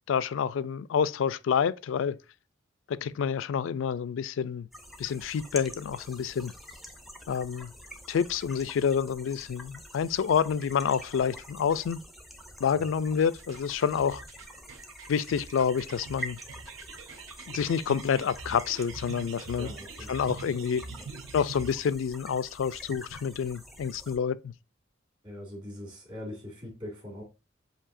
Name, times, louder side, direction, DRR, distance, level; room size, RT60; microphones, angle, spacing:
voice 1, 0.1-2.2 2.9-4.7 5.0-6.5 7.3-7.7 8.1-12.0 12.6-14.2 15.1-16.4 17.5-19.7 20.1-20.8 21.3-24.5, left 7 dB, 75° left, 0.3 m, -28 dB
sound 1, 4.7-24.2, equal, ahead, 0.5 m, -46 dB
sound 2, 13.2-21.9, right 4 dB, 75° right, 0.6 m, -44 dB
voice 2, 19.6-21.1 25.2-27.2, left 1 dB, 25° right, 2.2 m, -43 dB
7.3 x 2.7 x 2.5 m
head